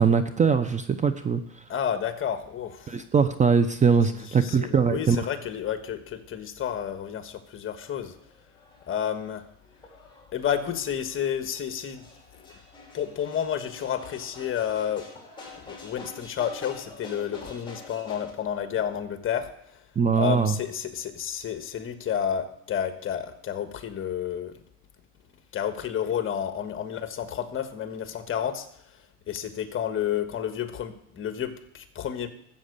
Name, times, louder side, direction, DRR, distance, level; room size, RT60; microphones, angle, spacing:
voice 1, 0.0-1.4 2.9-5.3 20.0-20.5, right 6 dB, 20° right, 10 dB, 0.7 m, -22 dB
voice 2, 1.7-3.0 4.2-8.1 8.9-9.4 10.3-12.1 12.4-12.5 12.9-15.1 15.5-19.8 20.2-24.5 25.5-28.7 29.3-32.3, left 9 dB, 35° left, 9 dB, 1.4 m, -30 dB
sound 1, 7.7-18.3, left 3 dB, 15° left, 4.1 m, -47 dB
13.0 x 7.9 x 6.7 m, 0.74 s
supercardioid pair, 110°, 37 cm